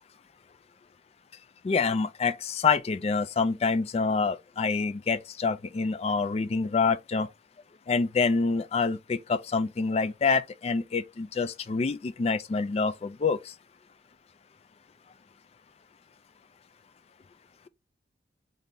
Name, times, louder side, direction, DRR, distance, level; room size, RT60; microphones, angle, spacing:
voice 1, 1.6-7.3 7.9-13.5, left 4 dB, 35° left, 0.3 m, -27 dB
3.7 x 2.7 x 3.2 m
head